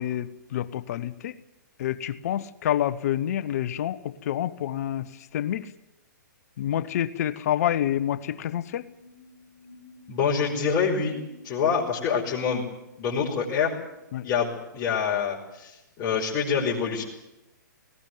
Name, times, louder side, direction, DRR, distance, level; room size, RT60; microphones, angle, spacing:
voice 1, 0.0-1.4 1.8-5.7 6.6-8.9 14.1-14.3, left 11 dB, 55° left, 15 dB, 1.2 m, -28 dB
sound 1, 8.2-13.9, left 2 dB, 55° right, 7.3 m, -51 dB
voice 2, 10.1-11.2 11.4-12.6 13.0-13.7 14.2-15.7 16.0-17.0, left 6 dB, 30° left, -5 dB, 5.1 m, -26 dB
19.5 x 18.0 x 9.4 m, 0.92 s
hypercardioid pair, 130°, 10 cm